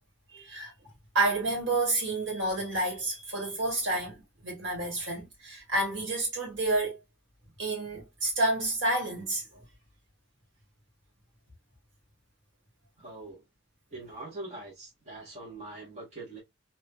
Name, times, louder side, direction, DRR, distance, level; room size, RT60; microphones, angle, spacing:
voice 1, 0.3-0.7 1.1-7.0 7.6-9.6, right 2 dB, 70° right, 2.0 m, -29 dB
voice 2, 13.0-13.4 13.9-16.4, right 2 dB, 35° right, 1.6 m, -43 dB
3.2 x 3.0 x 2.2 m
head